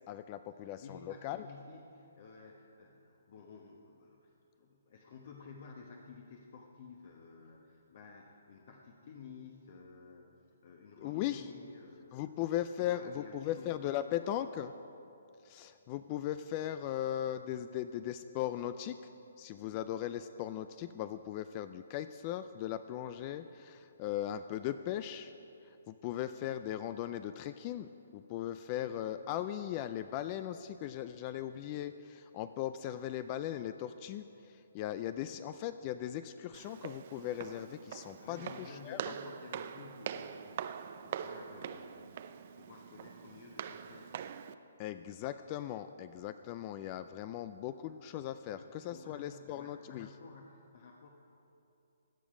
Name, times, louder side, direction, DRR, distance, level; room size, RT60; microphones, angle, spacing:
voice 1, 0.1-1.4 11.0-11.5 12.1-14.7 15.4-19.0 19.4-25.3 25.6-39.1 44.8-50.1, left 11 dB, 25° left, 11 dB, 0.3 m, -38 dB
voice 2, 0.8-4.3 4.6-10.3 10.6-12.3 12.8-13.9 19.5-19.8 28.5-28.9 38.2-40.6 41.0-42.2 42.6-44.2 48.6-51.1, left 5 dB, 45° left, 1 dB, 1.1 m, -53 dB
Walk footsteps, 36.5-44.5, right 8 dB, 40° right, 0.5 m, -44 dB
16.5 x 10.5 x 5.0 m, 2.8 s
hypercardioid pair, 160°, 0 cm